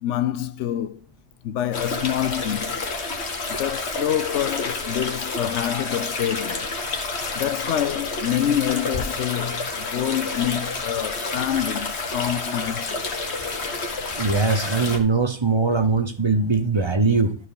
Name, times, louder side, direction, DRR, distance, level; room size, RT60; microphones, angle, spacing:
voice 1, 0.0-1.0 1.4-2.9 3.6-6.7 7.3-13.0, left 11 dB, 80° left, 0.9 m, -26 dB
sound 1, 1.7-15.0, left 3 dB, 65° left, 1.7 m, -29 dB
voice 2, 14.2-17.3, right 4 dB, 25° right, 0.8 m, -21 dB
12.5 x 4.7 x 4.8 m
omnidirectional pair, 1.2 m